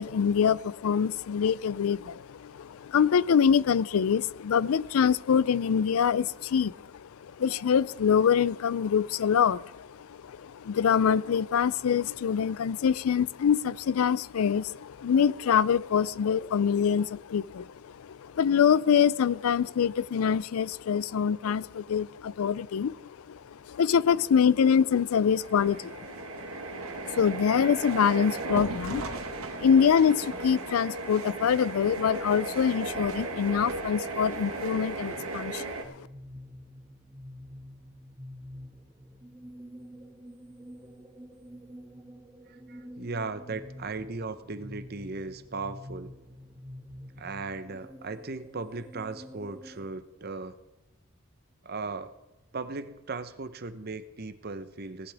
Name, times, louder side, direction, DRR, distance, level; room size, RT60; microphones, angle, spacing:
voice 1, 0.0-7.1 7.4-23.4 23.7-36.1, left 7 dB, 80° left, 21 dB, 0.4 m, -25 dB
sound 1, 25.2-35.8, right 3 dB, 80° right, 1.4 m, -36 dB
sound 2, 35.7-49.9, equal, 15° right, 1.6 m, -47 dB
voice 2, 42.5-46.1 47.2-50.6 51.6-52.1 52.5-55.1, right 3 dB, 45° right, 11 dB, 0.8 m, -37 dB
18.0 x 11.5 x 3.5 m, 1.0 s
head